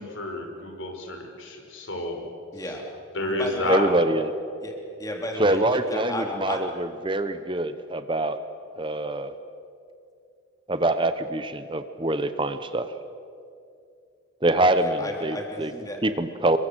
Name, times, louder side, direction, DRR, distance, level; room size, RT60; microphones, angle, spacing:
voice 1, 0.0-2.2 3.1-3.9, left 2 dB, 70° left, 3 dB, 5.3 m, -30 dB
voice 2, 2.5-2.8 3.2-3.8 4.6-4.7 5.0-6.6 14.8-16.0, left 1 dB, 15° left, 1 dB, 3.4 m, -33 dB
voice 3, 3.7-4.3 5.4-8.4 8.8-9.3 10.7-12.9 14.4-15.7 16.0-16.6, right 1 dB, 25° right, 10 dB, 0.9 m, -24 dB
28.5 x 23.0 x 8.0 m, 2.5 s
head